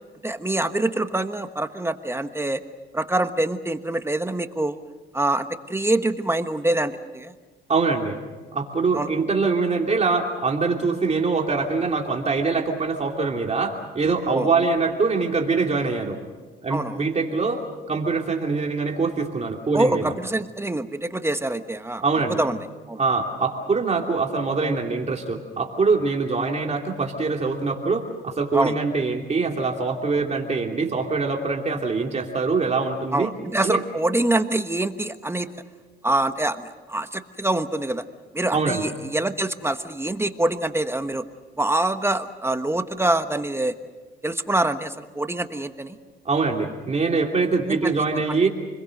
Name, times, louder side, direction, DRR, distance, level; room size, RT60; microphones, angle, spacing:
voice 1, 0.2-2.6 2.9-4.8 5.1-7.3 8.9-9.1 14.3-14.5 16.7-17.0 19.7-22.0 22.4-22.6 22.9-23.0 28.5-28.7 33.1-35.5 36.0-38.0 38.3-41.2 41.6-43.7 44.2-45.9 47.7-47.9 48.3-48.4, right 2 dB, 10° right, 8 dB, 1.2 m, -25 dB
voice 2, 7.7-8.1 8.5-16.2 16.6-17.6 17.9-20.0 22.0-22.4 23.0-33.3 33.6-33.8 38.5-38.8 46.2-48.5, right 4 dB, 35° right, 1 dB, 3.0 m, -23 dB
29.0 x 21.5 x 6.6 m, 1.3 s
cardioid pair, 90°, 20 cm